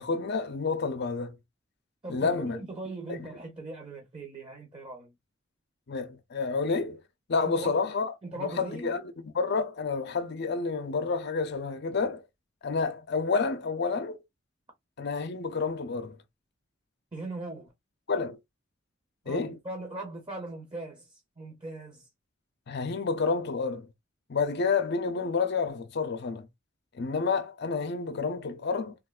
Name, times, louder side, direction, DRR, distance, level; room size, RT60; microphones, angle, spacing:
voice 1, 0.0-1.4 2.1-2.6 3.1-3.3 5.9-7.0 7.3-12.2 12.6-14.2 15.0-16.2 18.1-18.4 19.3-19.6 22.7-23.9 24.3-26.5 27.0-28.9, left 4 dB, 60° left, 0.6 m, -29 dB
voice 2, 2.0-5.2 7.4-7.8 8.2-9.0 17.1-17.7 19.2-22.1, right 2 dB, 25° right, 1.0 m, -40 dB
3.7 x 2.5 x 2.3 m
head